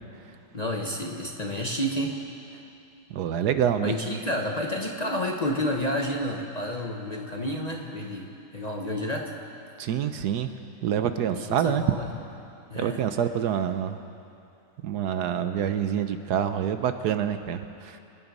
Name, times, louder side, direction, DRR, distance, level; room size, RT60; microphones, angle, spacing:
voice 1, 0.5-2.2 3.8-8.3 8.5-9.3 11.3-12.1 12.7-13.0, left 1 dB, 30° left, 0 dB, 0.9 m, -30 dB
voice 2, 3.1-3.9 9.8-10.5 10.8-12.0 12.8-14.0 14.8-18.0, right 9 dB, 70° right, 9 dB, 1.2 m, -26 dB
27.0 x 10.0 x 5.3 m, 2.7 s
omnidirectional pair, 1.9 m